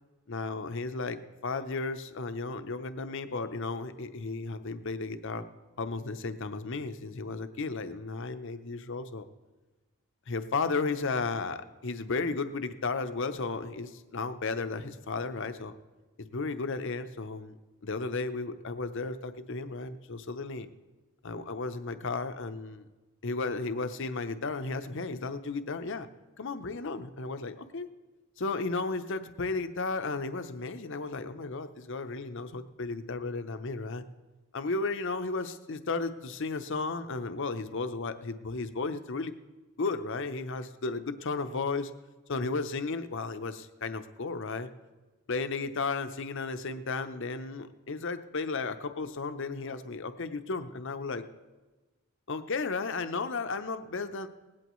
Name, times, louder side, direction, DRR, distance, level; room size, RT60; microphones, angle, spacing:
voice 1, 0.3-5.4 5.8-9.3 10.3-15.7 16.2-17.5 17.8-20.7 21.2-22.9 23.2-26.1 26.4-27.9 28.4-34.0 34.5-39.3 39.8-41.9 42.3-44.7 45.3-51.2 52.3-54.3, left 3 dB, 55° left, 9 dB, 0.7 m, -34 dB
19.0 x 16.5 x 3.1 m, 1.2 s
head